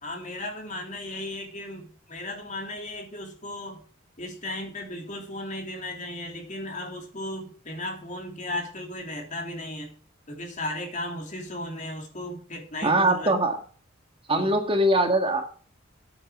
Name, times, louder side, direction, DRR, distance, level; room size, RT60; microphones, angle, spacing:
voice 1, 0.0-3.8 4.2-9.9 10.3-13.3 14.3-14.6, left 1 dB, 40° left, 2 dB, 3.3 m, -35 dB
voice 2, 12.8-13.6 14.3-15.4, right 1 dB, 25° right, 4 dB, 1.8 m, -22 dB
8.8 x 8.3 x 7.7 m, 0.43 s
head